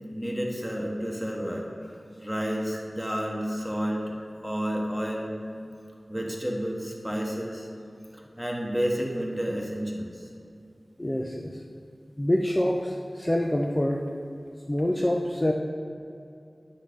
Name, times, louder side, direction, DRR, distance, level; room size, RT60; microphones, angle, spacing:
voice 1, 0.1-1.7 2.2-4.1 4.4-5.3 6.1-7.7 8.1-10.3, equal, ahead, -1 dB, 1.6 m, -30 dB
voice 2, 11.0-11.5 12.2-14.0 14.7-15.5, left 1 dB, 25° left, 0 dB, 0.7 m, -26 dB
9.6 x 4.2 x 6.5 m, 2.5 s
wide cardioid pair, 45°, 0 cm